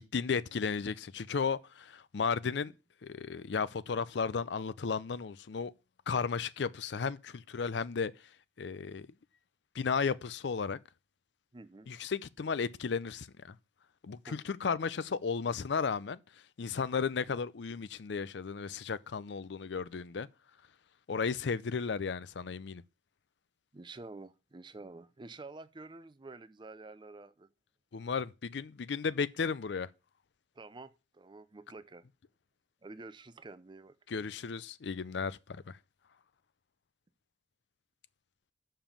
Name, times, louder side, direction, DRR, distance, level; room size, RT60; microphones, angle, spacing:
voice 1, 0.0-2.7 3.0-5.7 6.1-8.1 8.6-9.1 9.7-10.8 11.9-13.6 14.0-16.2 16.6-20.3 21.1-22.8 27.9-29.9 34.1-35.8, left 5 dB, 65° left, 0.5 m, -34 dB
voice 2, 11.5-11.9 14.2-14.4 23.7-27.5 30.6-32.0 32.8-34.0, right 3 dB, 25° right, 0.5 m, -49 dB
7.0 x 5.6 x 7.1 m
head